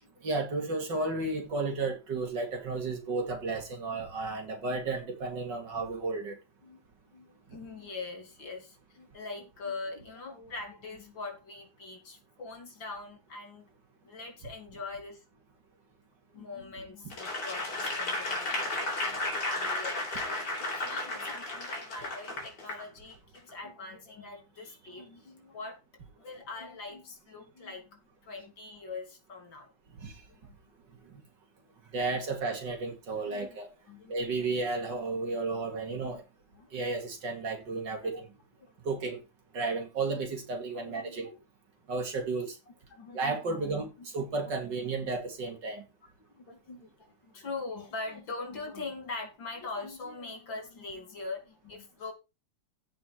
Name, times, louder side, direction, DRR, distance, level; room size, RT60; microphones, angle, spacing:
voice 1, 0.2-6.4 30.0-30.1 31.9-33.7 34.1-36.2 36.7-38.3 38.8-39.2 39.5-41.3 41.9-42.6 43.1-45.8, right 3 dB, 70° right, 3.0 m, -33 dB
voice 2, 7.1-13.7 14.0-15.2 16.3-25.8 26.2-29.7 30.3-30.6 32.0-32.2 33.2-33.6 33.9-34.4 36.5-36.8 38.0-38.2 38.6-38.7 40.7-41.4 42.7-43.8 45.0-45.1 46.0-52.1, left 3 dB, 80° left, 3.9 m, -43 dB
Applause / Crowd, 17.1-22.8 23.4-23.5, left 2 dB, 65° left, 4.3 m, -33 dB
15.5 x 5.2 x 4.5 m
omnidirectional pair, 2.0 m